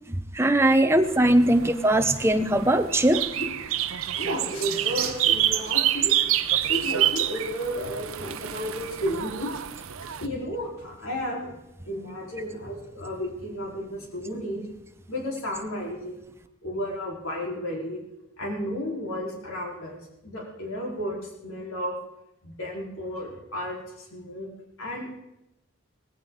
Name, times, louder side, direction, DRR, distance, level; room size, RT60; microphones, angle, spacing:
voice 1, 0.1-3.2, right 1 dB, 10° right, 8 dB, 0.6 m, -20 dB
sound 1, 1.1-10.3, right 11 dB, 80° right, 0.6 m, -27 dB
voice 2, 4.1-6.1 6.7-9.5 10.2-11.5 11.8-14.6 15.1-16.2 16.6-18.0 18.4-20.0 20.2-21.9 22.4-24.5 24.8-25.1, equal, 80° left, -2 dB, 3.6 m, -32 dB
17.5 x 15.5 x 3.6 m, 0.90 s
head